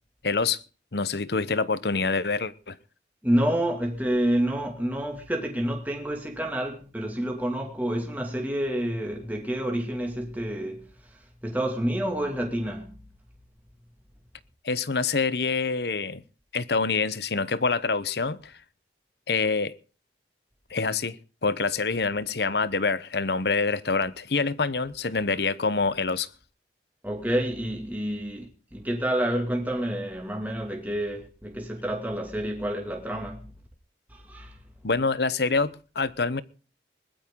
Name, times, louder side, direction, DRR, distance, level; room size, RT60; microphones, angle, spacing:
voice 1, 0.2-0.6 0.9-2.8 14.6-16.2 16.5-18.5 19.3-19.7 20.7-26.3 34.8-36.4, left 4 dB, 65° left, 0.9 m, -26 dB
voice 2, 3.2-10.9 11.4-12.9 27.0-33.5 34.1-34.6, right 1 dB, 10° right, 2.4 m, -28 dB
20.0 x 13.0 x 3.8 m
head